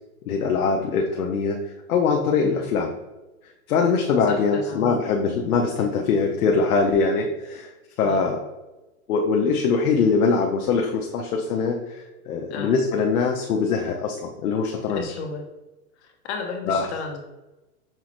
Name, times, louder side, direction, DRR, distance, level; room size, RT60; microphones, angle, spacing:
voice 1, 0.3-1.6 1.9-2.9 3.7-7.7 8.0-8.5 9.1-15.0 16.7-16.9, left 5 dB, 75° left, 2 dB, 0.7 m, -22 dB
voice 2, 4.3-4.9 8.0-8.2 12.5-12.7 14.9-15.4 16.0-17.2, left 4 dB, 50° left, 3 dB, 0.9 m, -33 dB
5.6 x 2.4 x 3.0 m, 1.1 s
hypercardioid pair, 150°, 44 cm